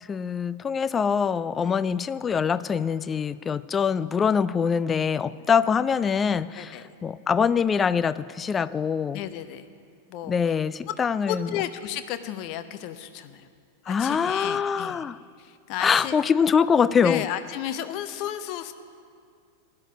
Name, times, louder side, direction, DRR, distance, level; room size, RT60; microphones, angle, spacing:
voice 1, 0.1-9.2 10.3-11.5 13.9-15.2 15.8-17.2, left 6 dB, 20° left, 16 dB, 0.3 m, -24 dB
voice 2, 9.1-9.7 10.1-10.5 11.3-13.5 13.8-15.0 15.4-16.2 17.0-18.7, left 11 dB, 45° left, 11 dB, 0.7 m, -33 dB
16.5 x 10.5 x 5.3 m, 2.2 s
figure-of-eight pair, 90°, 0 cm